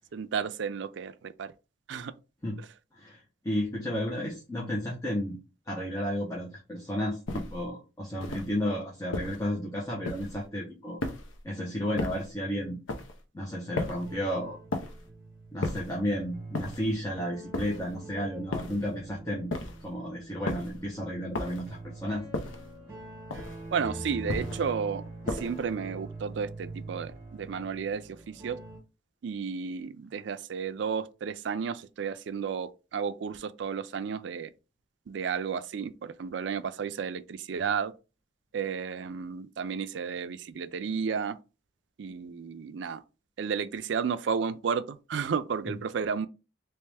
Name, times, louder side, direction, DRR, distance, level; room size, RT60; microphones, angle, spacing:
voice 1, 0.1-1.5 1.9-2.1 23.7-25.0 25.3-28.6 29.2-34.5 35.1-37.9 38.5-41.4 42.0-43.0 43.4-46.3, right 6 dB, 70° right, 0.4 m, -32 dB
voice 2, 2.9-5.4 5.7-11.0 11.4-12.8 13.3-14.6 15.5-19.5 19.8-22.2 45.7-45.8, equal, 15° left, 0.7 m, -32 dB
sound 1, 7.3-7.7 8.2-8.6 9.1-9.5 10.1-10.5 11.0-11.4 12.0-12.3 12.9-13.2 13.8-14.2 14.7-15.1 15.6-16.0 16.5-17.0 17.5-18.0 18.5-18.9 19.5-19.9 20.5-20.8 21.3-21.8 22.3-22.7 23.3-23.7 24.3-24.7 25.3-25.7, left 2 dB, 90° left, 0.6 m, -35 dB
sound 2, 14.0-28.8, right 2 dB, 15° right, 1.3 m, -44 dB
3.3 x 3.0 x 3.3 m
head